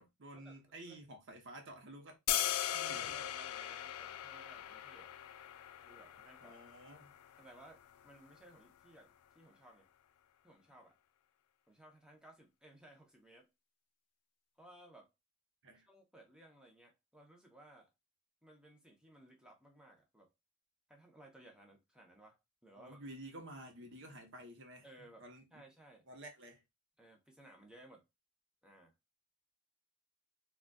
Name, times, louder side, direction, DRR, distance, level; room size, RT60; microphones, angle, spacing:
voice 1, 0.0-2.2 2.7-3.4 6.4-7.1 15.6-15.9 22.7-25.6 26.1-26.6, right 1 dB, 55° right, 0.8 m, -52 dB
sound 1, 2.3-8.4, left 11 dB, 85° left, 0.4 m, -40 dB
voice 2, 2.4-5.1 5.8-6.6 7.4-9.9 10.4-11.0 11.7-13.5 14.6-15.1 15.9-17.9 18.4-20.3 20.9-22.4 22.6-23.0 24.8-25.3 25.5-26.1 27.0-28.0 28.6-28.9, right 1 dB, 5° right, 0.7 m, -59 dB
3.8 x 2.4 x 2.2 m
head